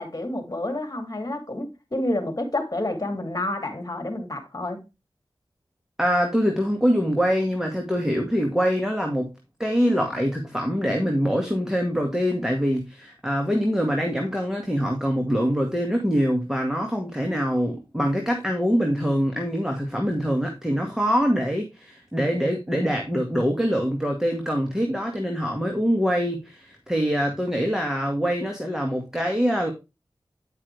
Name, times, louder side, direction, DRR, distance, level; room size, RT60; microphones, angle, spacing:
voice 1, 0.0-4.8, left 1 dB, 40° left, 2.7 m, -29 dB
voice 2, 6.0-9.3 9.6-29.7, equal, 5° right, 1.9 m, -24 dB
9.9 x 5.6 x 3.4 m
wide cardioid pair, 50°, 9 cm